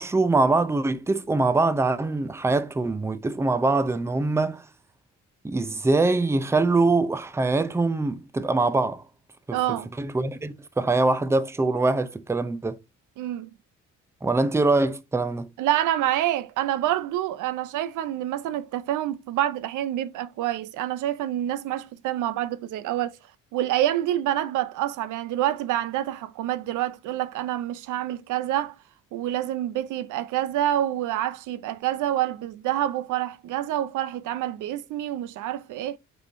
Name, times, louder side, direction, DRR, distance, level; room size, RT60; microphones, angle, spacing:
voice 1, 0.0-4.6 5.4-9.0 9.5-9.6 10.0-12.8 14.2-15.5, right 3 dB, 10° right, 0.5 m, -23 dB
voice 2, 9.5-9.9 13.2-13.5 15.6-23.2 23.5-28.8 29.1-36.0, right 12 dB, 85° right, 0.6 m, -27 dB
5.3 x 3.6 x 2.6 m
cardioid pair, 90°, 30 cm